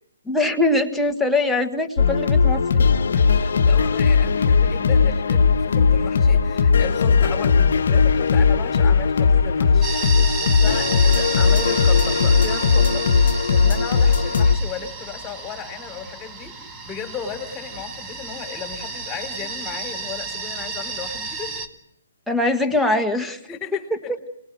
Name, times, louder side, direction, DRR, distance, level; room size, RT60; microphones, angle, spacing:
voice 1, 0.3-2.8 22.3-23.4, left 2 dB, ahead, 2 dB, 1.7 m, -22 dB
sound 1, 2.0-14.6, left 5 dB, 65° left, 1.1 m, -18 dB
voice 2, 3.1-9.9 10.6-21.6 23.5-24.1, left 8 dB, 15° left, 6 dB, 3.7 m, -35 dB
sound 2, 9.8-21.7, right 4 dB, 25° right, 2.1 m, -31 dB
28.5 x 20.5 x 6.2 m, 0.74 s
figure-of-eight pair, 140°, 0 cm